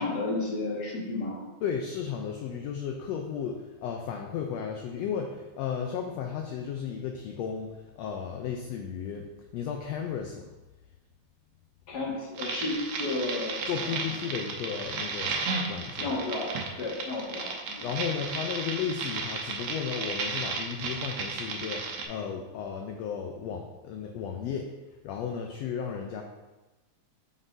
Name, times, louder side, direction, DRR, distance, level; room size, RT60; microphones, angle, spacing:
voice 1, 0.0-1.5 11.9-13.6 16.0-17.8, left 2 dB, 40° left, -3 dB, 1.8 m, -32 dB
voice 2, 1.6-10.5 13.7-16.1 17.8-24.7 25.0-26.2, left 7 dB, 75° left, 2 dB, 1.6 m, -34 dB
sound 1, 12.4-22.0, right 4 dB, 70° right, 1.8 m, -34 dB
9.0 x 6.1 x 2.6 m, 1.1 s
omnidirectional pair, 3.4 m